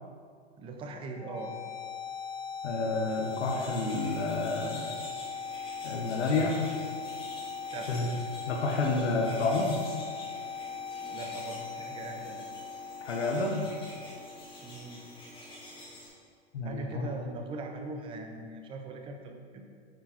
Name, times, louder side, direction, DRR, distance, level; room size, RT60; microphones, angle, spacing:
voice 1, 0.6-1.5 7.7-7.9 11.1-12.4 14.6-15.0 16.6-19.6, right 3 dB, 15° right, 4 dB, 0.6 m, -40 dB
sound 1, 1.1-15.1, left 5 dB, 70° left, 1.9 m, -40 dB
voice 2, 2.6-4.8 5.8-6.5 7.9-8.1 8.5-9.8 13.0-13.7 16.5-17.1, left 3 dB, 90° left, -1 dB, 1.3 m, -29 dB
sound 2, 2.8-16.1, left 1 dB, 15° left, 1.9 m, -47 dB
9.2 x 4.8 x 4.4 m, 2.1 s
hypercardioid pair, 150°, 33 cm